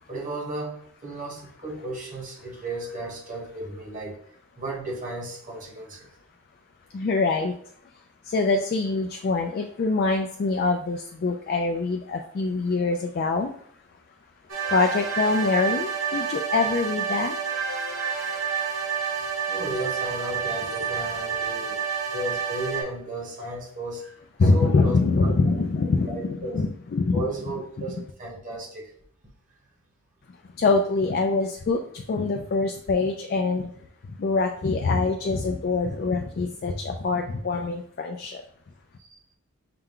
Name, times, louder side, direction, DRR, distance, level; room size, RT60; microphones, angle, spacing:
voice 1, 0.1-4.2 4.6-6.1 19.1-21.8 22.1-24.1 24.5-25.3 26.1-26.6 27.1-28.9, right 1 dB, 40° right, -2 dB, 1.1 m, -34 dB
voice 2, 6.9-7.5 8.2-13.5 14.7-17.3 24.4-27.3 27.8-27.9 30.6-33.7 34.2-38.4, left 3 dB, 45° left, 4 dB, 0.3 m, -24 dB
sound 1, 14.5-22.8, right 6 dB, 70° right, 1.4 m, -29 dB
5.7 x 2.2 x 3.7 m, 0.64 s
head